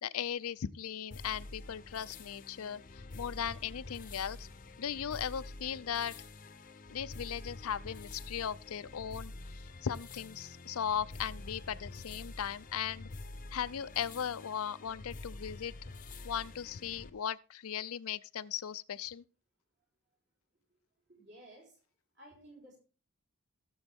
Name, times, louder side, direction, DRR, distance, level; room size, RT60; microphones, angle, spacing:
voice 1, 0.0-4.5 4.8-6.2 6.9-13.1 13.5-15.7 16.2-19.2, left 8 dB, 75° left, 0.5 m, -38 dB
sound 1, 1.1-17.1, left 2 dB, 35° left, 0.7 m, -47 dB
voice 2, 21.1-21.8 22.1-22.8, right 1 dB, 50° right, 4.5 m, -55 dB
16.5 x 7.0 x 3.5 m
head